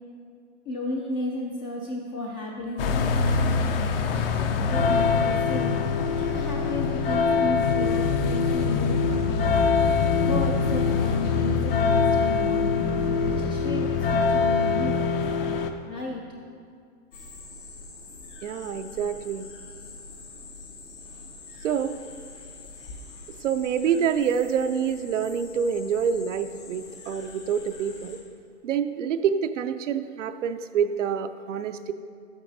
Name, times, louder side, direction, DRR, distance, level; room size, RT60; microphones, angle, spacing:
voice 1, 0.7-4.3 4.7-5.8 6.2-9.6 10.2-15.0 15.9-16.2, left 2 dB, 20° left, -1 dB, 0.3 m, -33 dB
sound 1, 2.8-15.7, left 5 dB, 50° left, 0.7 m, -23 dB
sound 2, 17.1-28.2, left 3 dB, 90° left, 2.3 m, -45 dB
voice 2, 18.4-19.4 21.6-22.0 23.4-28.2 28.6-31.9, right 7 dB, 85° right, 9 dB, 0.6 m, -27 dB
10.5 x 8.8 x 2.7 m, 2.3 s
hypercardioid pair, 135°, 36 cm